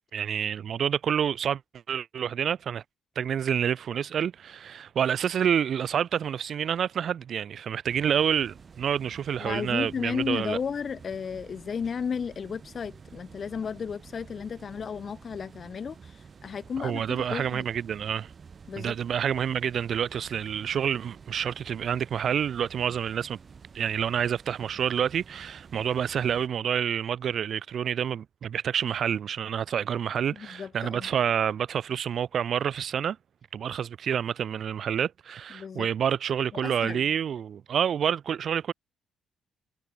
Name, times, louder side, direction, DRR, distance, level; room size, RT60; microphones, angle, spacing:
voice 1, 0.1-1.6 1.9-2.8 3.2-10.6 16.8-18.3 18.8-23.4 23.7-33.2 33.5-38.7, right 8 dB, 60° right, 0.8 m, -28 dB
sound 1, 7.8-26.5, right 6 dB, 40° right, 1.4 m, -50 dB
voice 2, 9.4-17.7 18.7-19.0 30.4-31.1 35.5-35.9 36.5-37.0, left 6 dB, 45° left, 0.3 m, -34 dB
cardioid pair, 90°, 0 cm